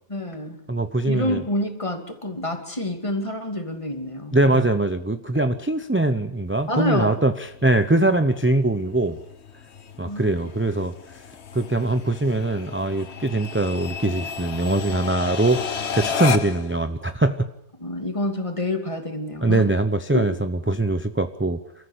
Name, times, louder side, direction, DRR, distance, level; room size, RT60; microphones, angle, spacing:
voice 1, 0.1-0.6 1.1-4.7 6.7-7.2 10.1-10.3 17.8-19.7 20.1-20.2, left 1 dB, 20° left, 5 dB, 2.7 m, -28 dB
voice 2, 0.7-1.4 4.3-7.3 7.6-9.2 10.0-10.9 11.5-15.6 15.9-17.5 19.4-21.6, right 2 dB, 15° right, 9 dB, 0.6 m, -22 dB
sound 1, 6.5-16.7, left 6 dB, 50° left, 1.3 m, -33 dB
29.0 x 14.0 x 8.4 m, 0.74 s
omnidirectional pair, 1.5 m